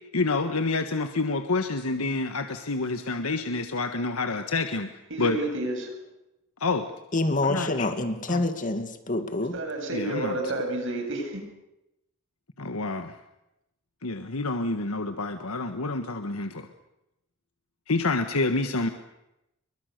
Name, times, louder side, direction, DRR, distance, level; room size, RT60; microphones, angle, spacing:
voice 1, 0.1-4.9 5.2-5.4 6.6-6.9 7.4-7.9 8.3-8.4 9.9-10.4 12.6-13.1 14.0-16.7 17.9-18.9, left 3 dB, 85° left, 7 dB, 1.5 m, -28 dB
voice 2, 5.1-5.9 9.5-11.4, right 2 dB, 65° right, 3 dB, 8.0 m, -30 dB
voice 3, 7.1-9.6, left 2 dB, 40° left, 8 dB, 2.2 m, -27 dB
29.0 x 23.5 x 6.7 m, 0.89 s
head